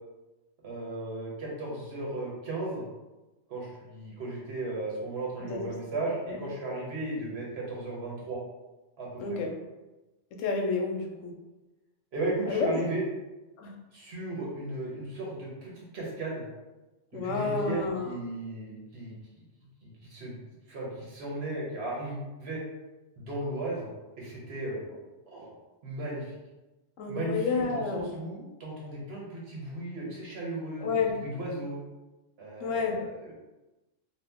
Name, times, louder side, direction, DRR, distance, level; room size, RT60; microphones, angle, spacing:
voice 1, 0.6-2.8 3.5-8.4 9.0-9.1 12.1-13.0 13.9-16.4 17.1-19.1 19.8-20.4 20.7-22.6 23.2-23.9 24.2-24.8 25.3-25.5 25.8-26.3 27.1-31.8 32.4-33.3, right 2 dB, 60° right, -4 dB, 1.2 m, -35 dB
voice 2, 9.2-9.5 10.4-11.3 12.5-12.8 13.6-13.7 17.1-18.1 27.0-28.1 30.8-31.1 32.6-32.9, left 4 dB, 85° left, 2 dB, 1.0 m, -29 dB
2.7 x 2.4 x 3.5 m, 1.1 s
omnidirectional pair, 1.3 m